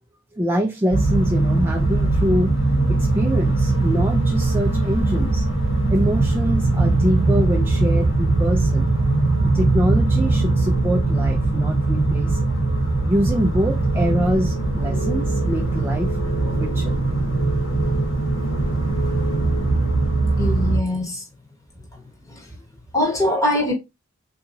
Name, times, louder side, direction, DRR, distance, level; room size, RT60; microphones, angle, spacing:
voice 1, 0.3-2.5 2.9-5.4 5.9-8.9 9.4-12.5 13.0-16.2 16.5-16.9, equal, 10° right, 0.3 m, -24 dB
sound 1, 0.9-20.8, right 2 dB, 80° left, 1.4 m, -20 dB
voice 2, 20.4-21.2 22.3-22.5 22.9-23.7, left 1 dB, 15° left, 1.0 m, -22 dB
3.9 x 2.7 x 2.6 m
head